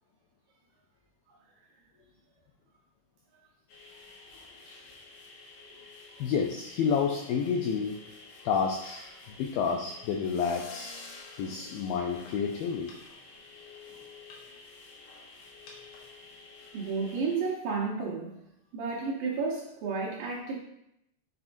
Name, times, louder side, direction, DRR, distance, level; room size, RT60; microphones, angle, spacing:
sound 1, 3.7-17.4, left 3 dB, 70° left, 2.8 m, -50 dB
voice 1, 6.2-8.0 8.4-9.0 9.4-10.9 11.4-12.9, left 6 dB, 85° left, 2 dB, 2.1 m, -29 dB
voice 2, 16.7-18.4 18.7-20.6, right 4 dB, 70° right, -4 dB, 2.1 m, -32 dB
7.9 x 5.8 x 2.6 m, 0.80 s
omnidirectional pair, 4.8 m